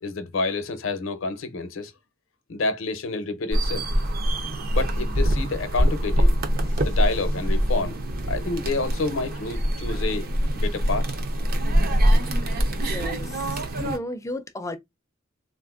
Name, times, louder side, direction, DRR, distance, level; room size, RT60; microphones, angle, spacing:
voice 1, 0.0-1.9 2.5-3.9 4.7-6.3 6.8-8.0 8.3-10.3 10.5-11.1, left 3 dB, 75° left, 0.6 m, -28 dB
sound 1, 3.5-14.0, equal, 50° right, 0.6 m, -24 dB
sound 2, 4.5-9.5, right 3 dB, 85° right, 1.3 m, -46 dB
voice 2, 12.8-14.8, left 2 dB, 15° left, 0.4 m, -34 dB
3.6 x 2.5 x 2.4 m
head